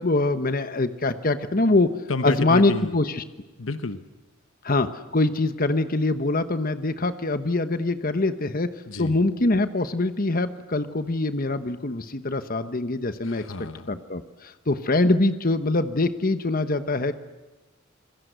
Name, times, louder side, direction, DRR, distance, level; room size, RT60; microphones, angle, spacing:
voice 1, 0.0-1.9 2.2-3.2 4.6-8.7 9.0-13.4 13.9-17.1, left 2 dB, 45° left, 11 dB, 1.1 m, -23 dB
voice 2, 2.1-2.9 3.6-4.0 8.9-9.2 13.2-13.9, left 3 dB, 65° left, 11 dB, 1.1 m, -30 dB
27.0 x 21.0 x 8.1 m, 1.2 s
head